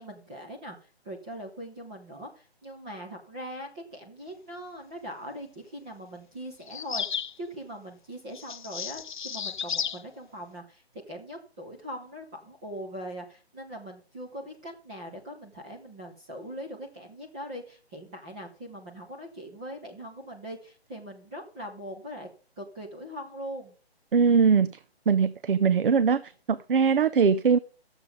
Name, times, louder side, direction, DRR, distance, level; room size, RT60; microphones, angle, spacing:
voice 1, 0.0-22.3 22.6-23.8, equal, 10° right, -2 dB, 0.6 m, -41 dB
sound 1, 6.7-7.4 8.3-10.0, left 7 dB, 50° left, 0.4 m, -33 dB
voice 2, 24.1-24.7 25.1-27.6, right 6 dB, 55° right, 15 dB, 0.6 m, -21 dB
11.5 x 7.3 x 5.2 m, 0.39 s
figure-of-eight pair, 150°, 32 cm